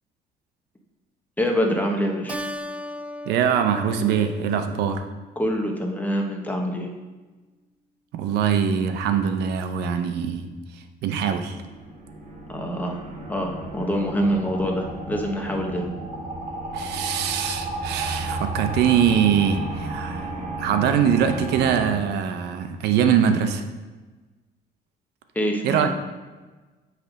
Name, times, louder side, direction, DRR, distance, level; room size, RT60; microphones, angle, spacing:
voice 1, 1.4-2.4 5.4-6.9 12.5-12.9 13.3-15.9 25.3-25.9, equal, 10° left, 2 dB, 1.0 m, -25 dB
Keyboard (musical), 2.3-5.2, left 1 dB, 10° right, 0.3 m, -36 dB
voice 2, 3.3-5.1 8.1-10.5 11.0-11.6 16.7-20.3 20.6-23.6 25.6-25.9, right 8 dB, 80° right, 8 dB, 0.7 m, -22 dB
sound 1, 11.5-22.0, right 2 dB, 45° right, 1.8 m, -33 dB
8.1 x 3.4 x 5.1 m, 1.3 s
cardioid pair, 110°, 17 cm